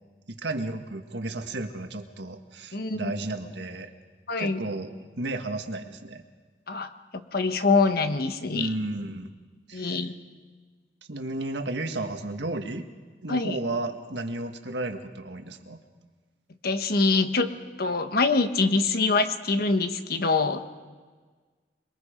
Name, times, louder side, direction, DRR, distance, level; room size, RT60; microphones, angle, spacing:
voice 1, 0.3-3.9 4.4-4.9 5.2-6.2 8.5-9.3 9.7-10.0 11.1-12.9 13.2-15.8, right 2 dB, 80° right, 5 dB, 1.7 m, -33 dB
voice 2, 2.7-3.1 4.3-4.6 6.7-8.7 9.7-10.1 13.3-13.6 16.6-17.5 17.8-20.6, left 3 dB, 60° left, 8 dB, 1.3 m, -24 dB
28.0 x 22.0 x 5.2 m, 1.4 s
head